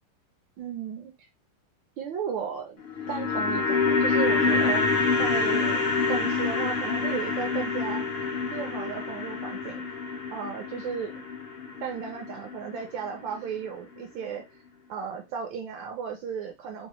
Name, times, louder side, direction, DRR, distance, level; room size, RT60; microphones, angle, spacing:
voice 1, 0.6-1.1 2.0-2.8 3.1-4.9 5.2-5.8 6.1-8.1 8.5-9.8 10.3-11.2 11.8-14.4 14.9-16.9, right 7 dB, 75° right, 3 dB, 1.2 m, -35 dB
sound 1, 2.8-13.1 13.3-13.4, left 4 dB, 80° left, 0.5 m, -27 dB
3.9 x 2.0 x 2.9 m, 0.24 s
omnidirectional pair, 2.3 m